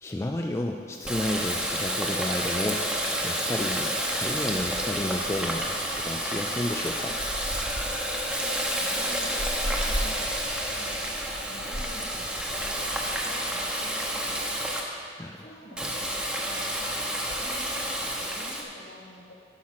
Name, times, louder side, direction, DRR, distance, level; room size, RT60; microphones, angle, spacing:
voice 1, 0.0-2.9 3.2-7.2 15.2-15.4 15.8-15.9, left 1 dB, 15° left, 1 dB, 0.4 m, -32 dB
Water tap faucet, 1.0-14.8 15.8-18.6, equal, 5° right, 0.8 m, -29 dB
voice 2, 8.3-14.5 15.4-19.3, left 1 dB, 60° left, -1 dB, 1.8 m, -47 dB
10.5 x 6.1 x 5.8 m, 2.3 s
head